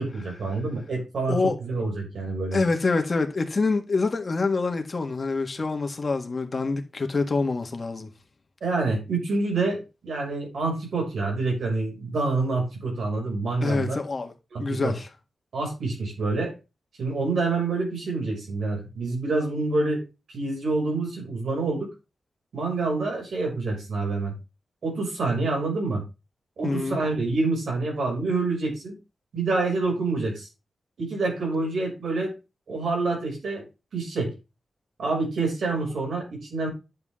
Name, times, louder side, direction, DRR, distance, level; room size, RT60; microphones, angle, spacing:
voice 1, 0.0-2.6 8.6-14.0 14.5-14.9 15.5-16.5 17.0-20.0 20.3-21.9 22.5-24.3 24.8-26.0 26.6-29.0 29.3-30.5 31.0-32.3 32.7-33.6 33.9-34.3 35.0-36.7, right 3 dB, 85° right, 6.3 m, -27 dB
voice 2, 2.5-8.1 13.6-14.3 14.6-15.1 26.6-27.0, left 3 dB, 40° left, 1.7 m, -26 dB
10.5 x 7.7 x 3.7 m
wide cardioid pair, 110°, 0 cm